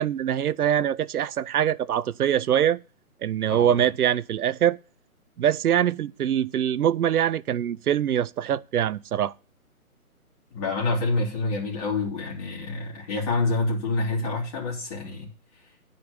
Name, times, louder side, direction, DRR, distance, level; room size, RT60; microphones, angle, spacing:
voice 1, 0.0-2.8 3.2-4.8 5.4-9.3, right 10 dB, 80° right, 0.6 m, -23 dB
voice 2, 10.5-15.3, left 3 dB, 25° left, 3.2 m, -27 dB
9.6 x 5.3 x 6.7 m
hypercardioid pair, 160°, 44 cm